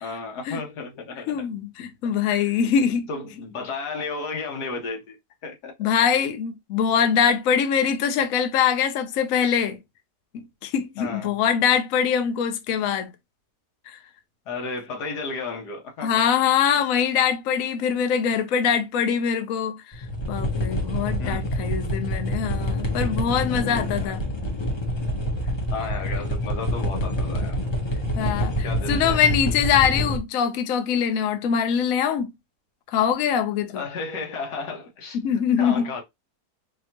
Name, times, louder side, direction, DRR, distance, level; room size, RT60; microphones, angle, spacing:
voice 1, 0.0-1.5 2.3-2.6 3.1-5.2 5.4-5.9 11.0-11.3 14.5-16.1 21.2-21.5 23.8-24.1 25.4-27.6 28.6-29.3 33.7-36.0, left 4 dB, 90° left, 1.7 m, -33 dB
voice 2, 1.3-3.1 5.8-9.8 10.3-13.1 16.0-19.8 20.3-24.2 28.2-28.5 28.9-32.3 32.9-33.8 35.1-35.9, left 8 dB, 65° left, 1.0 m, -23 dB
sound 1, 19.9-30.2, equal, 40° left, 0.4 m, -26 dB
4.0 x 2.9 x 2.8 m
omnidirectional pair, 1.7 m